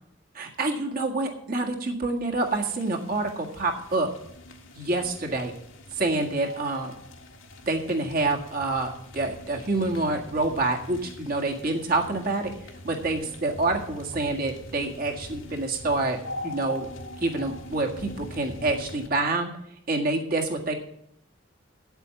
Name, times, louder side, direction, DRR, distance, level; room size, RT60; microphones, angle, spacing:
voice 1, 0.4-4.1 4.8-5.5 6.0-6.9 7.7-12.5 12.8-16.2 16.4-16.9 17.2-19.5 19.9-20.7, right 2 dB, 50° right, 1 dB, 1.8 m, -27 dB
sound 1, 2.4-19.1, left 1 dB, 90° left, 1.7 m, -43 dB
8.8 x 8.1 x 6.9 m, 0.74 s
head